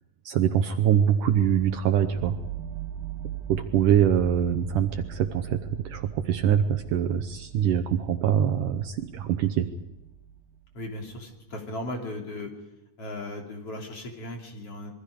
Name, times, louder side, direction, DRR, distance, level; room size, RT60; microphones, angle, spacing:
voice 1, 0.3-2.4 3.5-9.7, right 9 dB, 70° right, 8 dB, 2.2 m, -24 dB
sound 1, 1.2-11.0, right 10 dB, 90° right, 3.2 m, -40 dB
voice 2, 10.7-12.5 13.0-14.9, left 1 dB, 40° left, 1 dB, 4.0 m, -36 dB
26.5 x 23.5 x 5.0 m, 0.93 s
omnidirectional pair, 4.3 m